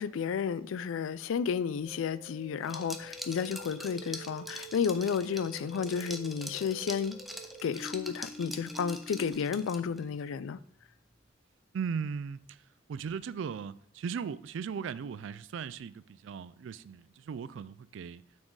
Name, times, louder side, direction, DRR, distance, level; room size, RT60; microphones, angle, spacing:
voice 1, 0.0-7.2 7.6-10.6, left 6 dB, 90° left, 0.3 m, -32 dB
sound 1, 1.8-9.3, right 1 dB, 35° left, 1.6 m, -48 dB
Liquid, 2.6-10.0, equal, ahead, 0.4 m, -44 dB
voice 2, 11.7-12.4 12.9-18.2, right 6 dB, 70° right, 0.3 m, -37 dB
6.0 x 4.4 x 4.7 m
head